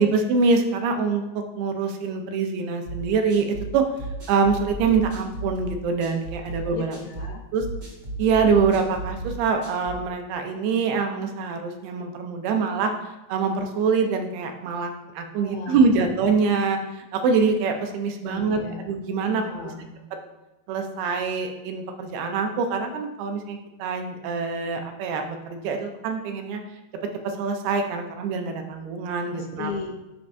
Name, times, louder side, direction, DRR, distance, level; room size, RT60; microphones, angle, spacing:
voice 1, 0.0-3.9 4.3-7.0 7.5-7.7 8.2-12.9 13.3-19.4 20.7-26.6 27.0-29.7, right 5 dB, 80° right, 4 dB, 2.5 m, -24 dB
sound 1, 2.8-10.1, right 2 dB, 60° right, 0.9 m, -35 dB
voice 2, 6.7-7.4 15.4-16.1 18.2-18.9 19.3-19.9 29.3-29.9, left 5 dB, 80° left, 2 dB, 2.2 m, -36 dB
8.7 x 5.1 x 2.6 m, 1.0 s
omnidirectional pair, 4.5 m